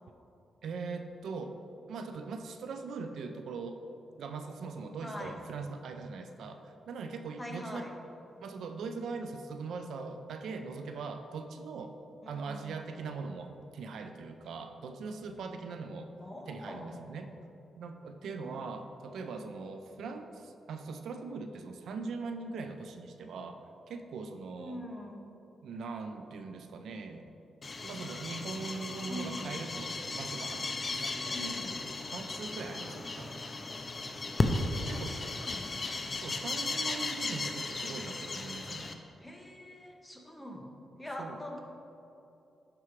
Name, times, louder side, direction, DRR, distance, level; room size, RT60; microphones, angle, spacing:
voice 1, 0.6-1.6 1.9-3.8 4.2-7.8 8.4-11.9 12.3-16.1 16.5-17.3 17.7-24.8 25.6-27.3 27.8-30.7 31.0-31.4 32.1-33.4 34.9-35.2 36.1-38.9 41.2-41.4, right 4 dB, 80° right, 7 dB, 0.4 m, -41 dB
voice 2, 5.0-5.4 7.4-7.9 12.2-12.7 16.2-17.0 18.4-18.6 24.6-25.2 29.1-29.6 31.3-31.9 34.9-36.1 39.2-40.7 41.0-41.6, left 1 dB, 10° left, 1 dB, 1.1 m, -43 dB
sound 1, 27.6-38.9, left 3 dB, 35° left, 0.6 m, -35 dB
11.5 x 4.6 x 3.2 m, 2.8 s
cardioid pair, 80°, 0 cm